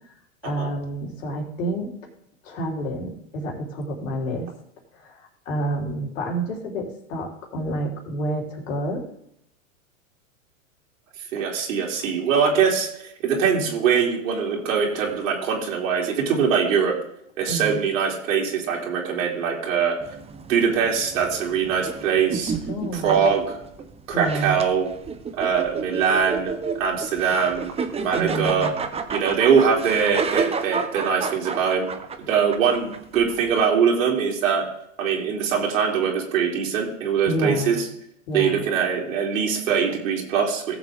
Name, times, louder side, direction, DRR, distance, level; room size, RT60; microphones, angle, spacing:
voice 1, 0.4-1.9 2.4-4.5 4.9-9.1 17.5-17.8 22.6-23.2 24.1-24.6 28.1-28.7 37.3-37.8 38.3-38.6, right 1 dB, 70° left, 0 dB, 3.8 m, -29 dB
voice 2, 11.3-12.9 13.2-17.0 17.4-20.0 20.5-22.5 22.9-23.4 24.1-24.9 25.4-28.7 29.1-31.9 32.3-34.6 35.0-37.8 38.3-40.8, right 6 dB, 75° right, -2 dB, 3.3 m, -22 dB
sound 1, 20.0-33.6, right 5 dB, 15° right, 1.0 m, -31 dB
17.5 x 7.4 x 3.6 m, 0.77 s
hypercardioid pair, 115°, 41 cm